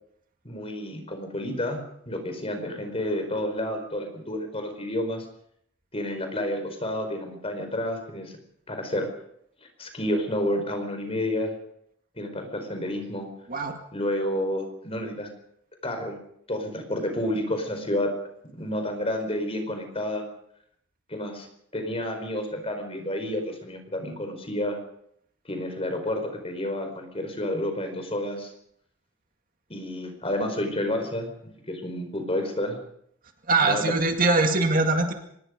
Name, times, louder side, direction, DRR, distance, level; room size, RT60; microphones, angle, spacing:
voice 1, 0.4-5.3 5.9-8.3 8.7-9.1 9.6-11.5 12.2-13.3 13.9-15.3 15.8-16.2 16.5-18.1 18.6-20.3 21.1-21.5 21.7-24.8 25.4-28.5 29.7-31.3 31.7-32.8 33.6-33.8, left 1 dB, 30° left, 6 dB, 5.0 m, -30 dB
voice 2, 33.5-35.1, right 3 dB, 40° right, 4 dB, 2.2 m, -22 dB
25.0 x 20.5 x 5.3 m, 0.71 s
head